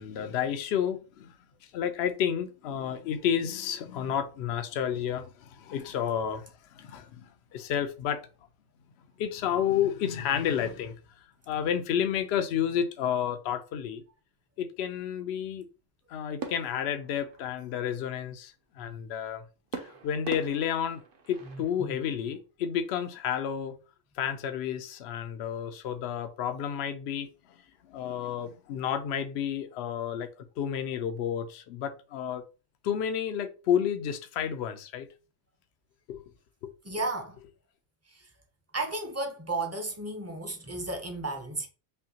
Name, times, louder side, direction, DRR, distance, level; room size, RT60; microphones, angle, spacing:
voice 1, 0.0-1.3 1.7-6.5 6.7-7.2 7.5-8.2 9.2-10.9 11.5-14.0 14.6-15.6 16.1-19.4 19.8-21.0 21.3-23.8 24.2-27.3 27.9-30.3 30.6-32.4 32.8-35.1 36.1-36.2 36.6-36.7, left 9 dB, 70° left, 0.8 m, -31 dB
sound 1, 16.4-18.0 19.7-21.8, right 5 dB, 55° right, 0.8 m, -42 dB
voice 2, 21.4-22.0 36.8-37.4 38.1-38.3 38.7-41.7, right 2 dB, 15° right, 0.6 m, -34 dB
5.4 x 2.2 x 2.8 m
omnidirectional pair, 1.2 m